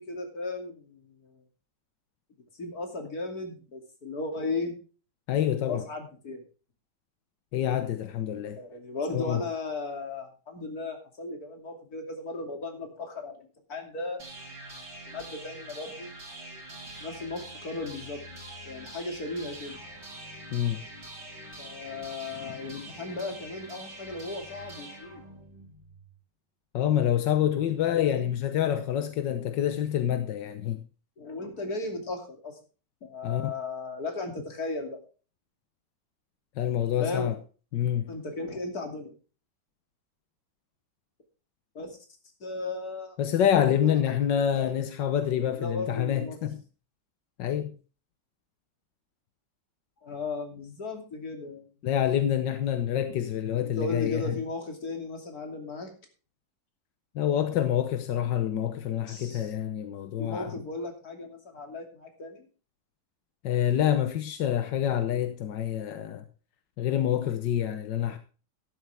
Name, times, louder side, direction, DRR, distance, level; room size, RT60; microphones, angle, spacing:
voice 1, 0.0-1.4 2.6-4.7 5.6-6.4 8.3-14.2 15.1-16.1 17.0-18.2 18.6-19.8 21.6-25.2 27.9-28.3 31.2-32.6 33.0-35.0 36.6-37.3 38.1-39.1 41.7-42.0 42.4-43.2 44.5-44.7 45.4-46.4 50.0-51.7 53.6-55.9 59.1-59.5 60.2-62.5, left 3 dB, 60° left, 3.2 m, -36 dB
voice 2, 5.3-5.8 7.5-8.6 9.1-9.4 20.5-20.8 26.7-30.8 33.2-33.5 36.6-37.4 37.7-38.1 43.2-46.6 47.4-47.8 51.8-54.4 57.1-60.5 63.4-66.2 66.8-68.2, left 10 dB, 90° left, 1.6 m, -27 dB
sound 1, 14.2-26.1, right 1 dB, 75° right, 7.1 m, -44 dB
12.5 x 11.5 x 3.4 m
omnidirectional pair, 1.9 m